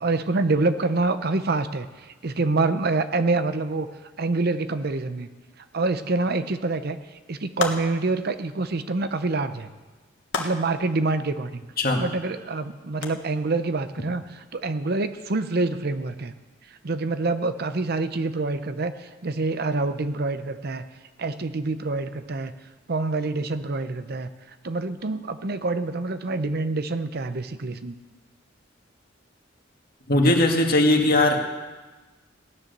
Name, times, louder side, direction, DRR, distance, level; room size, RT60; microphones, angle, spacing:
voice 1, 0.0-3.9 4.2-5.3 5.7-7.0 7.3-9.7 10.4-11.6 12.0-16.3 16.8-20.9 21.2-22.5 22.9-24.3 24.6-27.9, right 3 dB, 55° right, 11 dB, 0.7 m, -26 dB
sound 1, 7.6-8.2 10.3-10.9 13.0-13.1, left 4 dB, 70° left, 1.7 m, -30 dB
voice 2, 30.1-31.4, left 1 dB, 50° left, 2 dB, 2.0 m, -19 dB
16.5 x 10.5 x 6.7 m, 1.2 s
head